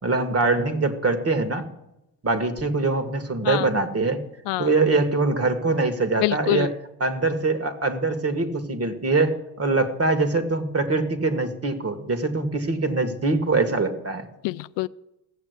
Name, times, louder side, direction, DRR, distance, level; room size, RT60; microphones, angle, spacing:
voice 1, 0.0-1.6 2.2-4.2 4.6-6.7 7.0-14.3, right 3 dB, 35° right, 9 dB, 2.1 m, -23 dB
voice 2, 6.2-6.7 14.4-14.9, left 18 dB, 75° left, 16 dB, 0.5 m, -25 dB
16.0 x 7.2 x 8.3 m, 0.90 s
supercardioid pair, 65°, 43 cm